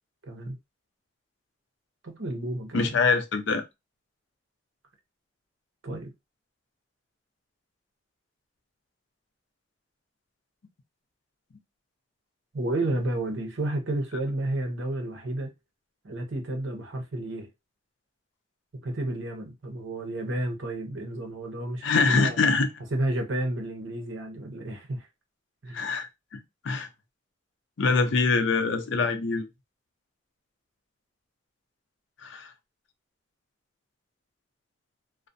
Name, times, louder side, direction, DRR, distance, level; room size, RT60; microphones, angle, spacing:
voice 1, 2.0-2.9 5.8-6.1 12.5-15.5 16.0-17.5 18.7-22.4 22.9-25.1 25.6-25.8, right 1 dB, 80° right, 0.7 m, -31 dB
voice 2, 2.7-3.6 21.8-22.7 25.7-26.4 26.6-26.9 27.8-29.5 32.2-32.5, left 4 dB, 70° left, 0.5 m, -24 dB
2.4 x 2.1 x 2.5 m
head